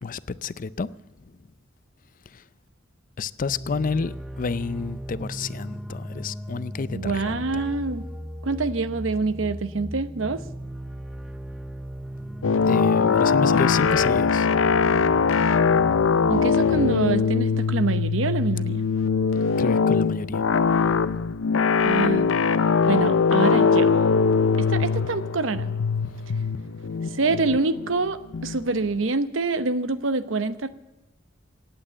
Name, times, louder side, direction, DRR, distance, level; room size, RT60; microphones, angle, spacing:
voice 1, 0.0-0.9 2.3-2.4 3.2-7.7 12.7-14.5 19.6-20.4, left 4 dB, 45° left, 0.5 m, -29 dB
sound 1, 3.4-17.1, equal, 5° right, 0.6 m, -36 dB
voice 2, 6.9-8.0 8.4-10.4 16.3-18.8 21.8-22.3 22.9-23.9 24.6-25.7 27.2-30.7, right 3 dB, 80° right, 0.9 m, -26 dB
sound 2, 12.4-29.0, left 5 dB, 90° left, 0.5 m, -22 dB
17.0 x 8.8 x 9.0 m
head